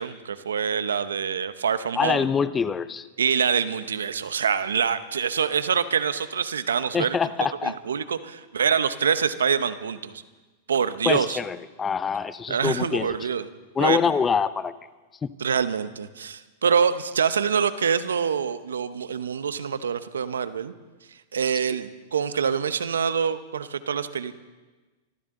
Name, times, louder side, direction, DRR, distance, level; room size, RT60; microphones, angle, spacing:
voice 1, 0.0-2.2 3.2-7.2 7.6-10.1 10.7-11.4 12.5-13.4 13.8-14.0 15.4-20.7 21.3-24.3, right 7 dB, 85° right, 13 dB, 0.9 m, -25 dB
voice 2, 2.0-3.1 6.9-7.7 11.0-13.2 13.8-14.7 15.2-15.3, left 6 dB, 20° left, 15 dB, 0.7 m, -25 dB
25.0 x 14.0 x 3.8 m, 1.3 s
hypercardioid pair, 105°, 0 cm